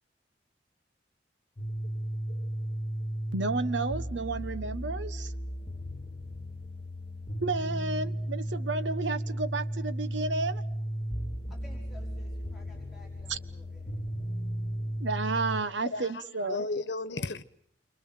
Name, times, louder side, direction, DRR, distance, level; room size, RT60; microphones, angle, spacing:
sound 1, 1.6-15.6, equal, 30° left, 2.0 m, -35 dB
voice 1, 3.3-5.3 7.4-10.6 13.3-13.4 15.0-16.6, right 3 dB, 85° right, 12 dB, 1.4 m, -32 dB
voice 2, 11.5-13.8, left 2 dB, ahead, -1 dB, 5.2 m, -55 dB
voice 3, 15.8-17.4, left 3 dB, 70° left, 14 dB, 1.3 m, -34 dB
29.0 x 25.5 x 7.7 m, 0.64 s
head